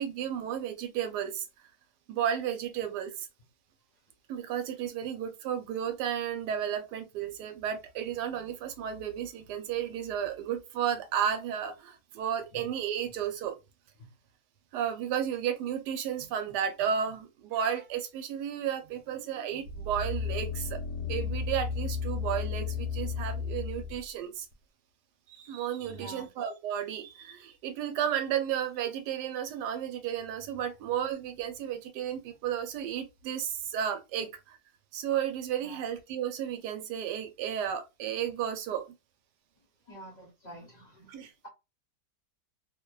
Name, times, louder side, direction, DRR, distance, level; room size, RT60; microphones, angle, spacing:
voice 1, 0.0-1.5 2.1-3.3 4.3-13.6 14.7-24.5 25.3-34.6 34.9-38.9 41.1-41.3, right 9 dB, 85° right, 1.2 m, -33 dB
sound 1, 19.7-24.0 24.5-24.6, left 5 dB, 85° left, 1.2 m, -33 dB
voice 2, 25.9-26.3 35.6-35.9 39.9-41.1, equal, 40° left, 0.7 m, -47 dB
2.8 x 2.1 x 2.2 m
omnidirectional pair, 1.8 m